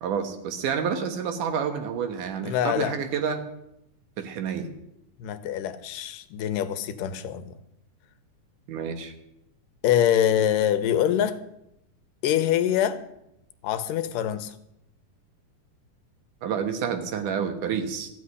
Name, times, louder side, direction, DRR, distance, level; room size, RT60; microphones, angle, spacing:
voice 1, 0.0-3.4 4.2-4.7 8.7-9.1 16.4-18.1, right 7 dB, 75° right, 7 dB, 2.7 m, -29 dB
voice 2, 2.4-2.9 5.2-7.5 9.8-11.4 12.2-13.0 13.6-14.5, left 10 dB, 90° left, 11 dB, 2.4 m, -24 dB
14.5 x 6.2 x 9.6 m, 0.83 s
omnidirectional pair, 3.8 m